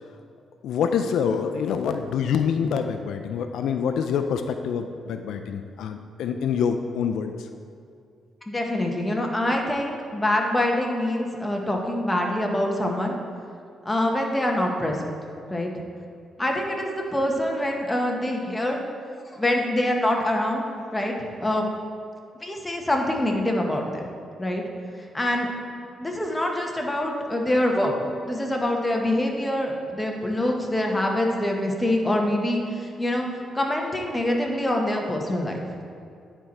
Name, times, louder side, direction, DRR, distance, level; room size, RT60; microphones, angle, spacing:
voice 1, 0.6-7.5, left 7 dB, 85° left, 7 dB, 0.4 m, -26 dB
voice 2, 8.5-13.2 13.8-15.1 15.5-15.7 16.4-18.8 19.3-20.7 20.9-21.1 21.4-21.7 22.4-24.0 24.4-24.6 25.1-25.5 26.0-27.9 28.3-33.3 33.5-35.6, left 1 dB, 10° left, 1 dB, 1.0 m, -25 dB
10.0 x 4.4 x 4.2 m, 2.4 s
cardioid pair, 100°, 0 cm